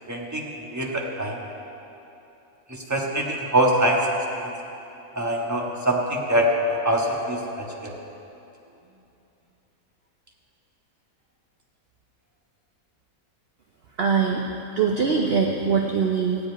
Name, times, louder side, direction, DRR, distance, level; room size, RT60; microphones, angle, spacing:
voice 1, 0.1-1.4 2.7-4.0 4.3-4.5 5.1-7.9, right 1 dB, 10° right, -2 dB, 1.3 m, -24 dB
voice 2, 14.0-14.4 14.8-16.4, right 5 dB, 50° right, 2 dB, 0.8 m, -22 dB
15.5 x 5.2 x 9.5 m, 2.9 s
omnidirectional pair, 1.6 m